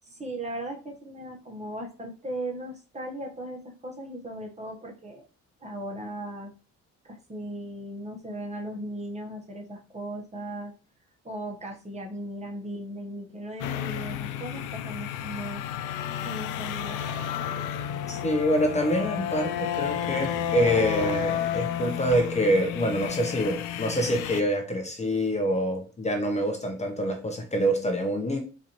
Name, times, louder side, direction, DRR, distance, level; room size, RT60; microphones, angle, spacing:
voice 1, 0.1-5.2 5.6-6.5 7.1-10.7 11.2-15.6 16.2-17.0, right 1 dB, 20° right, 1 dB, 0.9 m, -37 dB
sound 1, 13.6-24.4, left 10 dB, 90° left, 0.5 m, -31 dB
voice 2, 18.1-28.4, equal, 20° left, 3 dB, 0.7 m, -26 dB
4.1 x 2.5 x 2.9 m, 0.34 s
cardioid pair, 90°, 30 cm